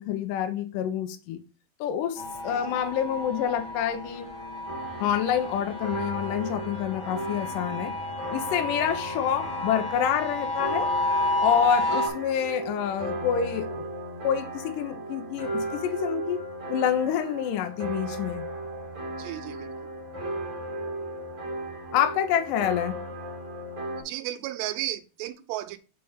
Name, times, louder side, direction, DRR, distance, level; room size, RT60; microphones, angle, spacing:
voice 1, 0.0-1.4 1.8-4.3 5.0-7.9 8.3-10.9 11.4-13.9 14.2-18.5 21.9-23.0, left 9 dB, 75° left, 2.1 m, -27 dB
sound 1, 2.2-12.1, left 2 dB, 60° left, 2.4 m, -31 dB
sound 2, 4.7-24.0, right 1 dB, 35° right, 2.4 m, -36 dB
voice 2, 19.1-19.7 24.0-25.8, right 14 dB, 90° right, 2.8 m, -34 dB
6.5 x 4.7 x 5.0 m
omnidirectional pair, 4.8 m